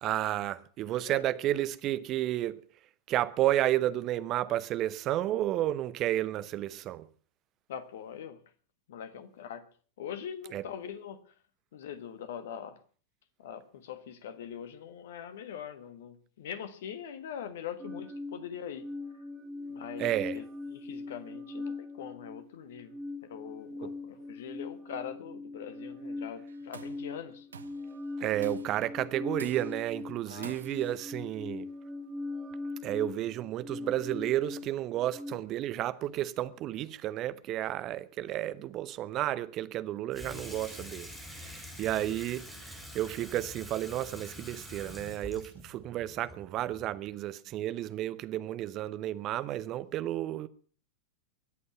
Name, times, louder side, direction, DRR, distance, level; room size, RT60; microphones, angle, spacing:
voice 1, 0.0-2.6 3.1-7.1 10.5-10.6 20.0-20.4 23.8-23.9 28.2-31.7 32.8-50.5, right 13 dB, 35° right, 0.8 m, -32 dB
voice 2, 7.7-8.4 8.9-9.6 10.0-11.3 11.7-12.8 13.4-18.9 19.1-19.2 19.7-23.0 23.2-27.5 30.2-30.6, left 8 dB, 55° left, 1.4 m, -42 dB
sound 1, 17.8-35.3, left 2 dB, 15° right, 2.8 m, -41 dB
Tools, 26.5-27.0 27.5-27.9 28.4-28.9 29.4-29.9 30.4-31.0, right 6 dB, 70° right, 0.8 m, -48 dB
Water tap faucet / Sink (filling or washing), 40.1-47.2, left 1 dB, ahead, 3.8 m, -46 dB
23.0 x 8.4 x 5.8 m
figure-of-eight pair, 90°, 0 cm